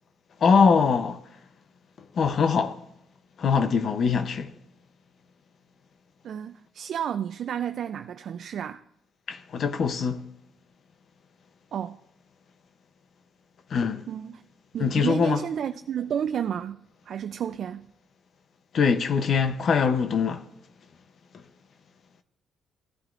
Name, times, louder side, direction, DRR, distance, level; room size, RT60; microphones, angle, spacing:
voice 1, 0.4-1.4 2.0-2.8 3.4-4.5 9.3-10.3 13.7-14.1 14.8-15.4 18.7-20.5 21.3-21.4, left 5 dB, 55° left, 0.6 m, -23 dB
voice 2, 6.2-8.8 11.7-12.0 14.1-14.4 14.7-17.9, right 9 dB, 65° right, 0.4 m, -31 dB
16.0 x 10.5 x 2.5 m
cardioid pair, 90°, 0 cm